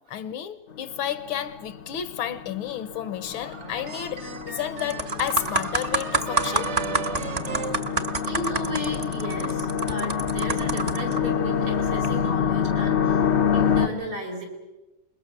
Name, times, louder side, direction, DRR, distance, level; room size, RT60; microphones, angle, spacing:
voice 1, 0.1-6.9, left 10 dB, 75° left, 1.7 m, -31 dB
sound 1, 0.7-13.9, left 7 dB, 55° left, 0.7 m, -27 dB
sound 2, 3.3-8.7, right 6 dB, 50° right, 0.9 m, -37 dB
sound 3, 4.2-4.4 4.8-11.2 11.9-12.1, right 2 dB, 30° right, 0.7 m, -28 dB
voice 2, 8.3-13.2 13.5-14.5, equal, 85° right, 5.6 m, -34 dB
26.0 x 21.5 x 6.8 m
omnidirectional pair, 2.3 m